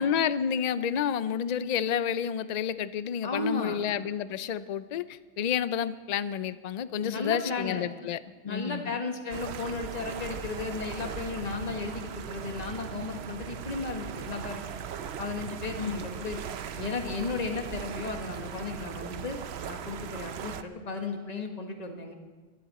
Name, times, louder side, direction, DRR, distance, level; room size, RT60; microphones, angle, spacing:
voice 1, 0.0-8.2 8.5-9.0 15.8-16.1, left 8 dB, 55° left, 15 dB, 0.4 m, -30 dB
voice 2, 3.2-3.8 7.0-7.9 8.4-14.6 15.2-16.4 16.7-19.4 19.7-22.1, left 3 dB, 35° left, 4 dB, 1.5 m, -34 dB
sound 1, 9.3-20.6, right 8 dB, 60° right, 0.9 m, -39 dB
24.0 x 12.0 x 4.2 m, 1.3 s
omnidirectional pair, 1.3 m